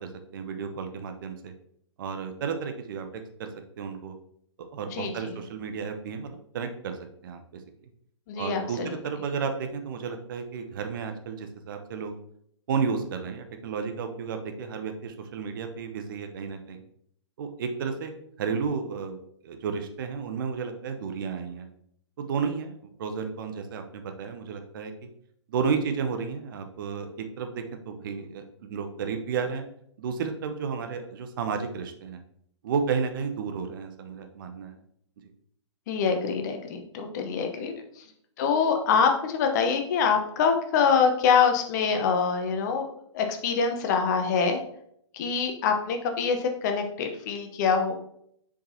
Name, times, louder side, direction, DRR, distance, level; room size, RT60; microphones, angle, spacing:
voice 1, 0.0-1.5 2.0-3.1 3.4-3.5 3.8-4.2 4.6-7.0 7.2-7.4 8.4-12.2 12.7-16.8 17.4-21.7 22.2-24.9 25.5-29.7 30.0-32.2 32.6-34.8, right 6 dB, 45° right, 6 dB, 0.9 m, -32 dB
voice 2, 4.9-5.4 8.3-9.0 35.9-38.0 38.4-42.8 43.1-44.6 45.1-47.9, left 6 dB, 35° left, 5 dB, 1.0 m, -25 dB
7.0 x 5.0 x 2.8 m, 0.69 s
figure-of-eight pair, 120°, 15 cm